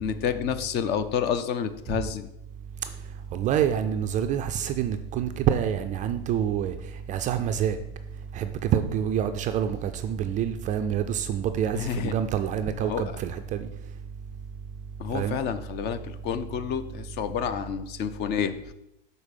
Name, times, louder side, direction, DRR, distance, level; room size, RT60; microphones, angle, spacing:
voice 1, 0.0-2.3 11.7-12.1 12.9-13.0 15.0-18.7, left 8 dB, 35° left, 11 dB, 0.5 m, -29 dB
voice 2, 3.3-6.7 7.1-7.8 8.3-13.7 15.1-15.4, right 9 dB, 25° right, 8 dB, 0.3 m, -27 dB
6.4 x 4.1 x 5.3 m, 0.84 s
hypercardioid pair, 110°, 30 cm